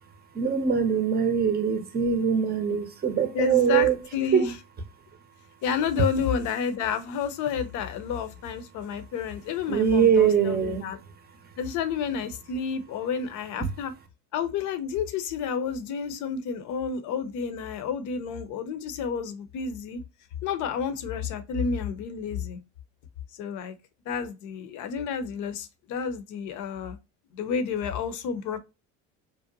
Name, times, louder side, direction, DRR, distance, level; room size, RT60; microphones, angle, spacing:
voice 1, 0.3-4.0 4.3-4.4 9.7-10.9 11.4-11.5, right 7 dB, 30° right, 0.6 m, -23 dB
voice 2, 3.3-4.5 5.6-11.0 11.6-13.9 14.3-20.0 20.4-22.6 23.3-23.8 24.1-27.0 27.3-28.6, left 6 dB, 60° left, 0.6 m, -30 dB
2.6 x 2.1 x 2.6 m
supercardioid pair, 90°, 33 cm